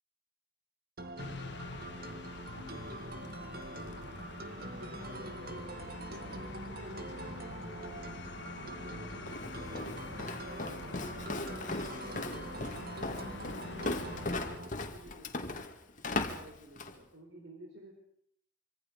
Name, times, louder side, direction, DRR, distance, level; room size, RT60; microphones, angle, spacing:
sound 1, 1.0-14.7, right 1 dB, 55° right, 2.1 m, -44 dB
sound 2, 1.2-14.6, left 3 dB, 65° left, 1.4 m, -46 dB
voice 1, 2.5-4.1 4.5-8.1 8.6-12.5 12.9-15.7 16.1-17.9, right 1 dB, 70° right, 2 dB, 4.3 m, -54 dB
Walk footsteps, 9.3-17.0, left 2 dB, 45° left, 2.1 m, -38 dB
26.5 x 25.0 x 5.3 m, 0.67 s
head